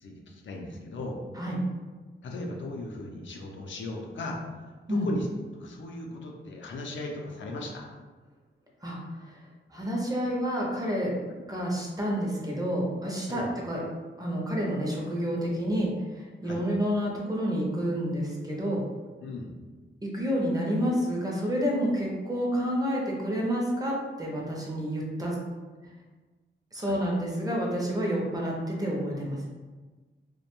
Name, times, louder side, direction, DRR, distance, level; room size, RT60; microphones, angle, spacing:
voice 1, 0.0-1.2 2.2-4.4 4.9-5.3 5.5-7.9 13.3-13.5 16.4-16.6 19.2-19.6 26.7-27.0, left 2 dB, 70° left, 0 dB, 0.4 m, -37 dB
voice 2, 8.8-9.4 9.7-11.1 11.5-13.8 14.2-18.8 20.0-25.4 26.7-29.5, equal, 20° right, -2 dB, 0.5 m, -29 dB
2.5 x 2.1 x 2.9 m, 1.3 s
wide cardioid pair, 140°, 20 cm